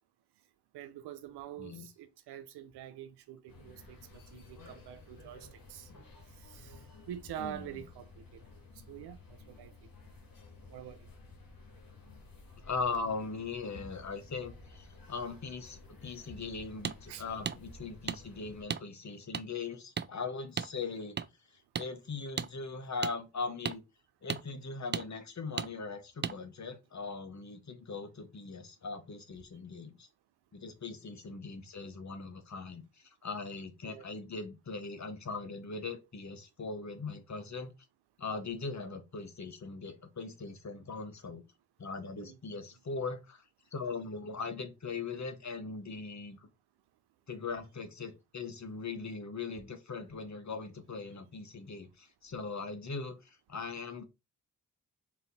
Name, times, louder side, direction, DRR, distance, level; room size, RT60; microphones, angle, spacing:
voice 1, 0.7-5.9 6.4-6.8 7.1-8.2 8.9-9.7 10.7-11.1 17.1-17.2 33.8-34.0 42.1-42.4, right 11 dB, 90° right, 0.6 m, -46 dB
sound 1, 3.5-18.6, left 3 dB, 60° left, 1.6 m, -53 dB
voice 2, 7.4-7.8 12.6-21.2 21.8-23.8 24.2-30.1 30.5-32.8 33.2-37.7 38.2-41.4 41.8-43.4 43.7-46.5 47.3-54.0, left 4 dB, 45° left, 1.1 m, -40 dB
sound 2, 16.8-17.0 17.5-17.6 18.1-18.2 18.7-18.8 19.3-19.4 20.0-20.1 20.6-20.7 21.2-21.3 21.7-21.9 22.4-22.5 23.0-23.1 23.6-23.8 24.3-24.4 24.9-25.1 25.6-25.7 26.2-26.4, right 7 dB, 30° right, 0.4 m, -34 dB
4.1 x 2.8 x 3.9 m
supercardioid pair, 40°, 39 cm